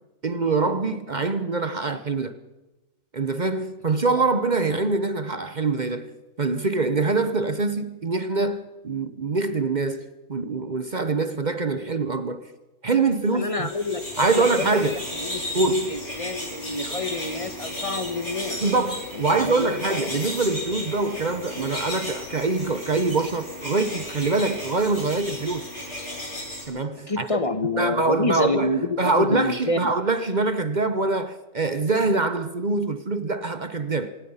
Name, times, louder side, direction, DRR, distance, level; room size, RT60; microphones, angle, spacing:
voice 1, 0.2-2.3 3.1-12.5 12.8-13.7 14.2-15.0 15.5-16.0 18.6-25.7 26.7-27.4 27.8-34.1, right 3 dB, 40° right, 0.6 m, -24 dB
voice 2, 13.3-18.7 19.1-19.7 27.1-29.9, left 2 dB, 20° left, 1.3 m, -28 dB
sound 1, 13.4-26.6, left 1 dB, 35° left, 6.9 m, -34 dB
26.0 x 19.0 x 5.6 m
omnidirectional pair, 1.9 m